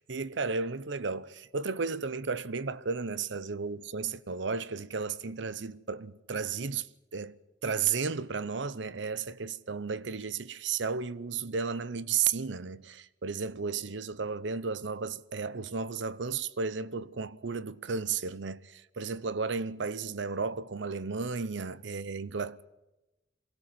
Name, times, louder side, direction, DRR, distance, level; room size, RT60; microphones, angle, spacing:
voice 1, 0.0-6.9 7.1-7.4 7.6-22.6, right 5 dB, 75° right, 0.7 m, -33 dB
23.0 x 16.5 x 7.6 m
head